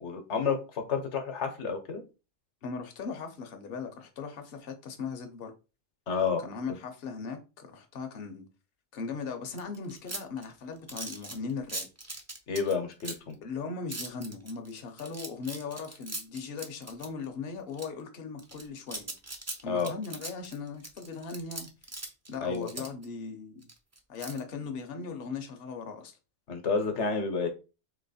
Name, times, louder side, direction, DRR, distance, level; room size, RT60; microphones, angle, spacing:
voice 1, 0.0-2.0 6.1-6.4 12.5-13.3 19.6-19.9 22.4-22.8 26.5-27.5, left 5 dB, 80° left, 1.2 m, -30 dB
voice 2, 2.6-5.5 6.4-8.4 8.9-11.9 13.4-19.1 19.6-21.7 22.3-23.6 24.1-26.2, left 5 dB, 60° left, 0.9 m, -38 dB
sound 1, 9.6-13.3 13.9-17.2 17.7-17.9 18.4-23.0 23.6-24.4, right 2 dB, 25° right, 0.4 m, -40 dB
3.0 x 2.9 x 4.1 m
omnidirectional pair, 1.2 m